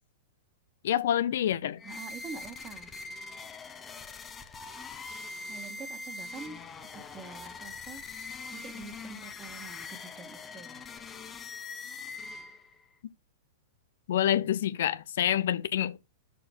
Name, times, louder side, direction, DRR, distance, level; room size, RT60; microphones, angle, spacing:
voice 1, 0.8-1.8 14.1-16.0, left 11 dB, 65° left, 0.6 m, -27 dB
sound 1, 1.8-12.8, left 3 dB, 20° left, 1.0 m, -43 dB
voice 2, 1.8-2.9 5.5-6.6 6.9-8.1 8.5-10.9, right 5 dB, 25° right, 1.6 m, -46 dB
6.6 x 4.3 x 6.5 m
hypercardioid pair, 105°, 0 cm